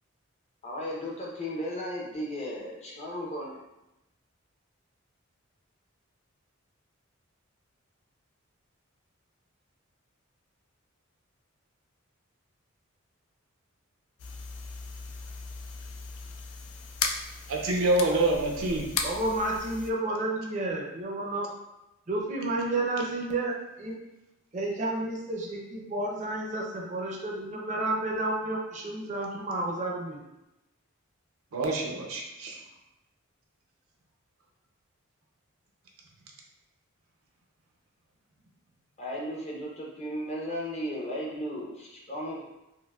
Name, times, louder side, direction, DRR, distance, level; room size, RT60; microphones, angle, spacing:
voice 1, 0.6-3.6 39.0-42.4, equal, 30° left, -3 dB, 0.6 m, -35 dB
sound 1, 14.2-19.9, left 5 dB, 80° left, 0.4 m, -37 dB
voice 2, 17.5-18.9 31.5-32.6, right 2 dB, 80° right, 0 dB, 0.6 m, -26 dB
voice 3, 19.0-21.5 22.1-24.0 24.5-30.2, right 2 dB, 35° right, -1 dB, 0.5 m, -31 dB
4.4 x 2.1 x 2.3 m, 0.93 s
head